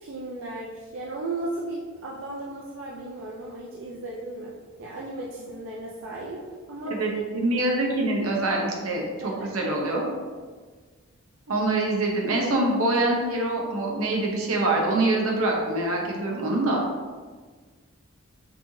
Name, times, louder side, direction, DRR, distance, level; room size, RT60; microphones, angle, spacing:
voice 1, 0.0-4.5 4.8-7.0 9.2-9.5, right 2 dB, 65° right, -4 dB, 0.5 m, -35 dB
voice 2, 6.8-10.1 11.5-16.8, right 2 dB, 80° right, -1 dB, 1.0 m, -25 dB
6.0 x 2.8 x 3.1 m, 1.5 s
head